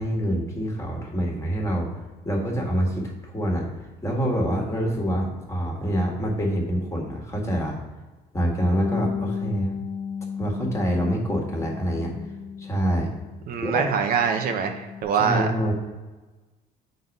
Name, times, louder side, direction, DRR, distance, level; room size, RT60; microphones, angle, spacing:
voice 1, 0.0-2.0 2.2-3.6 4.0-7.8 8.3-9.8 10.4-12.2 12.6-13.1 13.6-13.8 15.1-15.7, equal, 15° left, -1 dB, 1.6 m, -26 dB
Bass guitar, 8.8-13.5 13.8-15.0, left 7 dB, 80° left, 0.9 m, -34 dB
voice 2, 13.5-15.5, right 6 dB, 60° right, 5 dB, 0.7 m, -24 dB
6.5 x 4.0 x 5.3 m, 1.2 s
cardioid pair, 110°, 17 cm